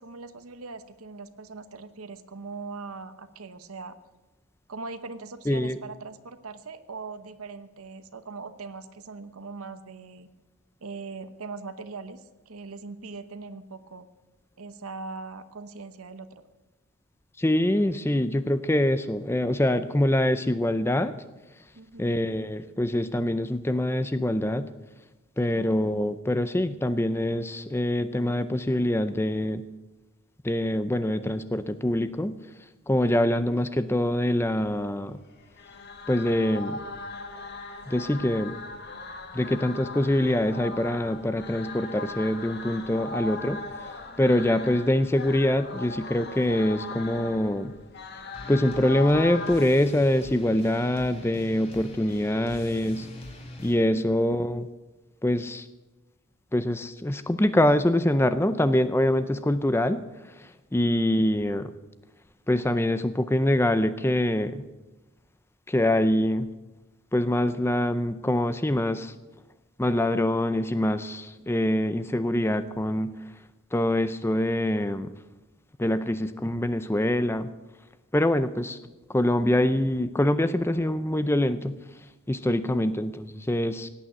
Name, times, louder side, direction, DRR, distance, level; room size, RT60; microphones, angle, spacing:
voice 1, 0.0-4.0 4.7-10.3 10.8-14.1 14.6-16.4 21.7-22.2 25.5-25.8 44.7-44.8 53.9-54.3 60.8-61.1 82.5-82.9, right 4 dB, 80° right, 11 dB, 0.9 m, -41 dB
voice 2, 5.5-5.8 17.4-21.1 22.0-24.7 25.4-29.6 30.4-32.4 32.9-35.2 36.1-36.8 37.9-38.6 39.3-43.6 44.2-47.7 48.5-53.1 53.6-54.7 55.2-55.7 56.5-60.0 60.4-61.7 62.5-64.7 65.7-66.5 67.1-69.1 69.8-73.1 73.7-75.1 75.8-77.5 78.1-78.8 79.1-81.8 82.3-83.9, left 1 dB, 10° left, 12 dB, 0.5 m, -24 dB
sound 1, 35.3-49.7, left 3 dB, 50° left, 1.6 m, -39 dB
sound 2, 48.3-53.7, left 1 dB, 25° left, 2.5 m, -43 dB
17.0 x 9.0 x 8.0 m, 1.1 s
head